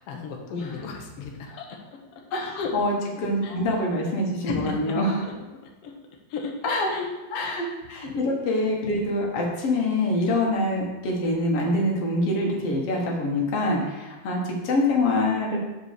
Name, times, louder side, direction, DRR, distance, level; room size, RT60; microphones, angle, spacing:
voice 1, 0.1-1.8 2.1-2.2 2.6-2.8 3.4-3.5 4.5-5.0 5.2-5.3 5.8-5.9 6.3-6.5 6.9-7.1 7.4-7.6 8.1-8.2, left 5 dB, 90° left, 1 dB, 1.3 m, -34 dB
voice 2, 2.3-5.2 6.6-6.9 7.3-15.6, left 1 dB, 55° left, -1 dB, 2.0 m, -25 dB
6.2 x 5.0 x 6.7 m, 1.1 s
omnidirectional pair, 4.0 m